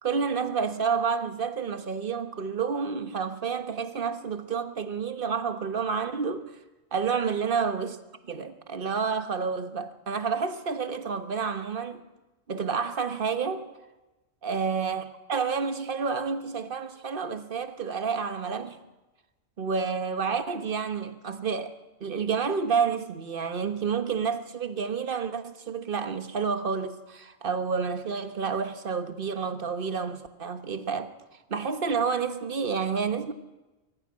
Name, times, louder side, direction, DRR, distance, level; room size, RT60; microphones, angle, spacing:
voice 1, 0.0-6.5 6.9-8.0 8.3-12.0 12.5-13.6 14.4-18.8 19.6-21.7 22.0-31.1 31.5-33.3, right 5 dB, 45° right, 1.3 m, -29 dB
22.5 x 14.5 x 8.4 m
omnidirectional pair, 1.4 m